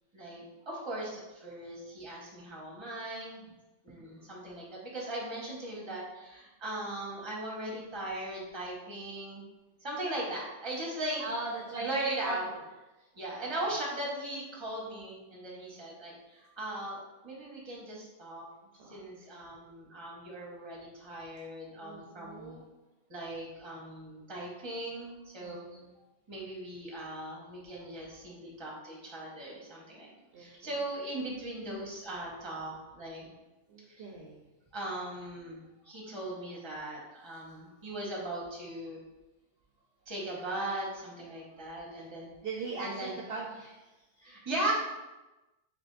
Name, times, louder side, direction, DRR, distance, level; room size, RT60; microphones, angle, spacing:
voice 1, 0.1-3.5 3.8-9.4 9.8-11.2 11.8-12.4 13.1-18.4 18.9-22.6 23.1-25.6 26.3-30.1 30.4-33.3 33.9-34.0 34.7-39.0 40.1-42.3 42.8-43.1 44.2-44.7, right 1 dB, 25° right, -3 dB, 1.0 m, -38 dB
voice 2, 4.0-4.6 11.2-12.6 13.0-13.1 13.4-13.5 18.7-19.0 21.8-22.6 25.4-25.9 30.3-30.7 33.7-34.4 37.3-37.4 41.9-42.0 42.4-44.3, right 3 dB, 60° right, -1 dB, 0.7 m, -41 dB
3.3 x 3.2 x 3.8 m, 1.1 s
omnidirectional pair, 1.2 m